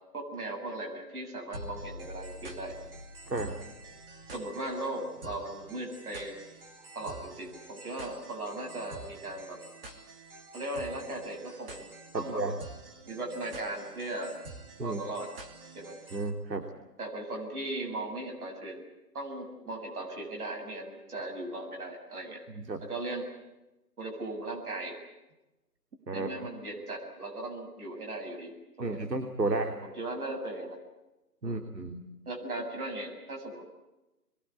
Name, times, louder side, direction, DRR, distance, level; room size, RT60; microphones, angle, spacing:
voice 1, 0.1-2.8 3.3-3.5 4.3-6.4 6.9-9.6 10.5-11.9 12.1-12.4 13.1-14.4 14.8-15.3 15.7-15.9 16.5-16.6 17.0-18.8 19.1-22.4 22.8-23.3 24.0-25.0 26.1-29.0 29.4-30.8 31.4-31.6 32.3-33.6, right 2 dB, 60° right, 1 dB, 7.6 m, -38 dB
sound 1, 1.5-16.3, right 2 dB, 35° right, 2.9 m, -48 dB
voice 2, 12.1-12.5 14.8-15.0 16.1-16.7 22.6-22.8 26.1-26.3 28.8-29.8 31.4-32.1, right 3 dB, 80° right, 5 dB, 3.0 m, -32 dB
26.5 x 22.5 x 8.4 m, 1.0 s
hypercardioid pair, 165°, 49 cm